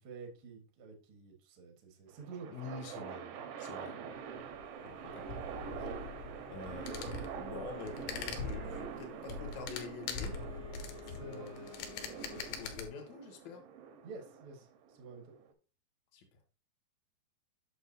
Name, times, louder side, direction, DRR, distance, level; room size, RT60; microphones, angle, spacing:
voice 1, 0.0-2.5 11.1-11.5 14.0-15.3, right 4 dB, 70° right, 3 dB, 1.3 m, -49 dB
sound 1, 2.1-15.5, right 7 dB, 90° right, 3.2 m, -45 dB
voice 2, 2.5-4.5 4.8-5.5 5.7-6.0 6.5-10.4 11.1-13.6 16.1-16.4, left 5 dB, 70° left, 4 dB, 1.7 m, -47 dB
sound 2, 4.3-12.9, left 5 dB, 85° left, 3.3 m, -43 dB
Wind instrument woodwind instrument, 10.2-13.1, left 7 dB, 55° left, 1.9 m, -53 dB
8.0 x 6.4 x 2.7 m, 0.34 s
omnidirectional pair, 5.1 m